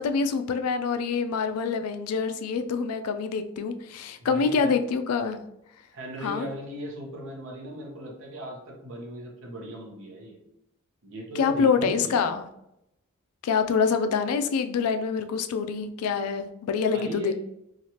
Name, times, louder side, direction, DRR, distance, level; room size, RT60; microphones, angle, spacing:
voice 1, 0.0-5.4 6.2-6.5 11.4-12.5 13.4-17.3, left 5 dB, 90° left, 9 dB, 0.3 m, -26 dB
voice 2, 4.2-4.7 5.9-10.4 11.0-12.3 16.9-17.3, right 1 dB, 65° right, 0 dB, 0.8 m, -38 dB
3.0 x 2.4 x 2.8 m, 0.82 s
head